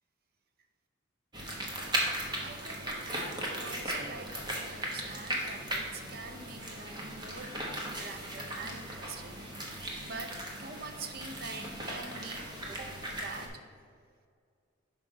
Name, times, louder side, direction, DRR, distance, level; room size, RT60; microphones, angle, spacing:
sound 1, 1.3-13.5, right 1 dB, 20° right, 1.0 m, -37 dB
voice 1, 1.7-2.0 2.4-7.6 7.8-9.4 10.0-13.5, right 3 dB, 45° right, 6 dB, 0.6 m, -45 dB
5.9 x 4.7 x 5.1 m, 2.2 s
head